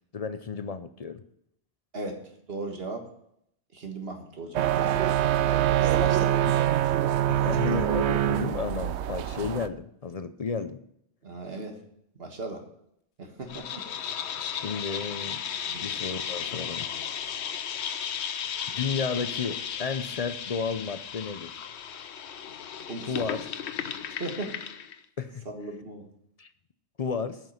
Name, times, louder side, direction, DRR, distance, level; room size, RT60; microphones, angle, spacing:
voice 1, 0.1-1.2 7.3-10.8 14.4-15.4 15.8-16.9 18.7-21.6 23.1-23.5 25.2-25.4 26.4-26.5 27.0-27.4, left 5 dB, 45° left, 11 dB, 0.5 m, -32 dB
voice 2, 2.5-3.1 3.7-4.9 5.8-6.4 7.3-7.8 11.2-11.8 12.2-12.7 13.2-13.9 15.6-15.9 22.9-23.3 24.2-24.6 25.5-26.1, right 2 dB, 60° right, 3 dB, 1.7 m, -37 dB
sound 1, 4.5-9.7, right 12 dB, 75° right, 0.8 m, -24 dB
sound 2, 13.5-25.0, left 8 dB, 70° left, 1.0 m, -35 dB
9.2 x 6.0 x 7.2 m, 0.73 s
omnidirectional pair, 1.2 m